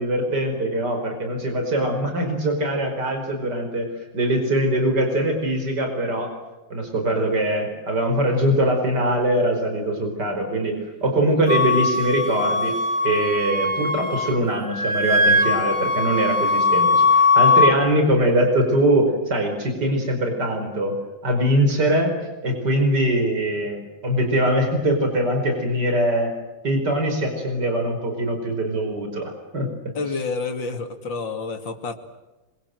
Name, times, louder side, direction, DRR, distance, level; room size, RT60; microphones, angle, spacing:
voice 1, 0.0-3.9 4.1-6.3 6.7-12.7 13.0-20.9 21.2-22.1 22.4-26.3 26.6-29.7, right 1 dB, 60° right, 4 dB, 5.6 m, -22 dB
Wind instrument woodwind instrument, 11.5-14.4 14.6-17.7, left 3 dB, 45° left, 3.2 m, -20 dB
voice 2, 30.0-32.0, left 4 dB, 70° left, 5 dB, 3.3 m, -29 dB
26.5 x 24.5 x 7.9 m, 1.1 s
omnidirectional pair, 2.1 m